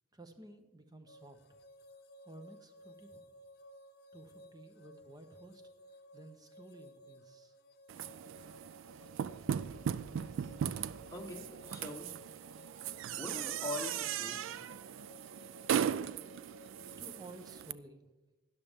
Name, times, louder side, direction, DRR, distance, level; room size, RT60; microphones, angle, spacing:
voice 1, 0.1-1.6 2.2-3.2 4.1-5.6 6.1-7.5 17.0-18.1, right 1 dB, 20° right, 7 dB, 0.8 m, -54 dB
sound 1, 1.1-17.5, equal, 50° left, 0.6 m, -57 dB
sound 2, 7.9-17.7, right 8 dB, 70° right, 0.3 m, -38 dB
voice 2, 11.1-12.2 13.2-14.6, left 2 dB, 15° left, 1 dB, 1.1 m, -43 dB
12.5 x 11.0 x 3.5 m, 1.1 s
head